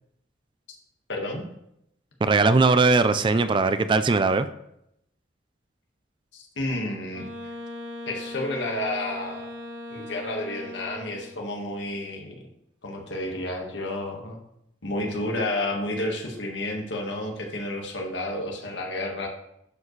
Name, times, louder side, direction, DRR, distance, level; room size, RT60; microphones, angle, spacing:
voice 1, 1.1-1.4 6.3-7.3 8.1-9.5 9.9-12.3 12.8-14.4 14.8-19.3, left 1 dB, 90° left, 1 dB, 1.6 m, -31 dB
voice 2, 2.2-4.5, right 3 dB, 25° right, 11 dB, 0.3 m, -20 dB
Wind instrument woodwind instrument, 7.1-11.4, left 1 dB, 80° right, 1.5 m, -39 dB
11.5 x 4.9 x 3.2 m, 0.78 s
head